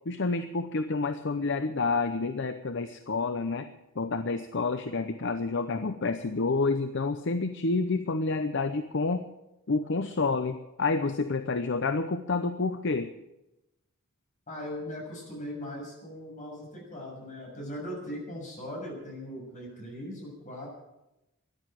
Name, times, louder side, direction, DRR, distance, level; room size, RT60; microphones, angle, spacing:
voice 1, 0.1-3.7 4.0-9.3 9.7-13.1, left 3 dB, 60° left, 10 dB, 0.7 m, -29 dB
voice 2, 14.5-20.7, equal, 35° left, -1 dB, 6.8 m, -39 dB
14.0 x 10.5 x 9.2 m, 0.93 s
head